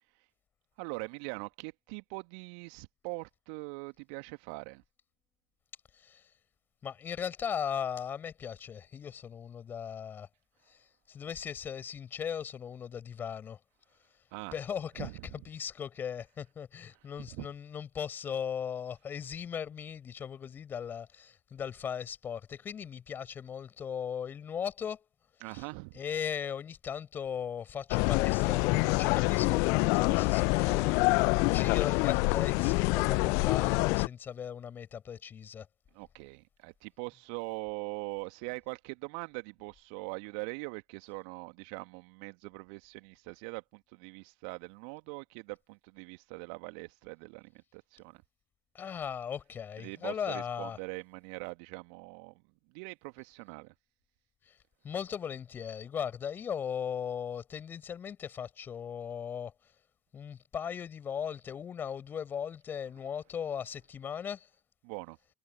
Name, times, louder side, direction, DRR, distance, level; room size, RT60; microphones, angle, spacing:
voice 1, 0.8-4.8 14.3-14.5 15.0-15.3 17.3-17.5 25.4-26.0 35.9-48.2 49.8-52.3 52.7-53.7 64.8-65.2, right 39 dB, 60° right, 2.1 m, -42 dB
voice 2, 5.9-6.3 6.8-10.3 10.7-13.6 14.5-15.1 15.4-25.0 25.5-25.6 25.9-35.7 48.7-50.8 54.5-54.6 54.8-59.5 60.1-64.5, left 8 dB, 30° left, 5.0 m, -38 dB
sound 1, 27.9-34.1, left 32 dB, 55° left, 0.7 m, -26 dB
figure-of-eight pair, 70°, 6 cm